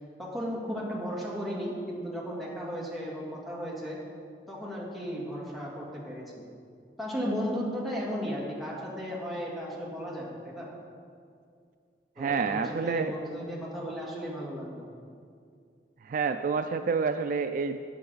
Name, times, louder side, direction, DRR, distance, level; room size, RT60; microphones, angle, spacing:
voice 1, 0.2-4.0 4.5-6.4 7.0-10.7 12.2-14.9, equal, ahead, -6 dB, 2.0 m, -35 dB
voice 2, 12.2-13.1 16.1-17.9, right 5 dB, 50° right, 8 dB, 0.3 m, -28 dB
12.5 x 8.6 x 4.0 m, 2.3 s
head